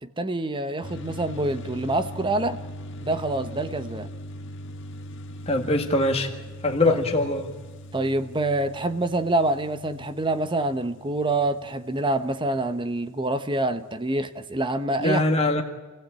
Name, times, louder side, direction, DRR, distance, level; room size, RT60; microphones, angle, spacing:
voice 1, 0.0-2.6 3.0-4.1 6.9-7.0 7.9-15.2, right 2 dB, 20° right, 11 dB, 0.9 m, -26 dB
sound 1, 0.8-13.3, equal, 55° left, 1.6 m, -41 dB
voice 2, 5.5-6.3 6.6-7.5 15.0-15.6, left 2 dB, 30° left, 2 dB, 1.8 m, -22 dB
27.0 x 16.0 x 9.0 m, 1.3 s
head